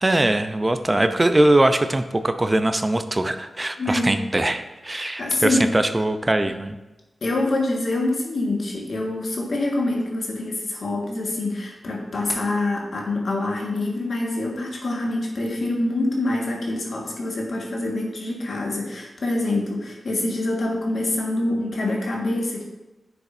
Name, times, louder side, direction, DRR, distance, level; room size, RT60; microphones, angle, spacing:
voice 1, 0.0-6.8, right 1 dB, 30° right, 9 dB, 0.6 m, -21 dB
voice 2, 3.8-4.2 4.9-5.7 7.2-22.6, left 2 dB, 70° left, -1 dB, 1.7 m, -25 dB
9.8 x 6.8 x 2.7 m, 1.1 s
cardioid pair, 50°, 0 cm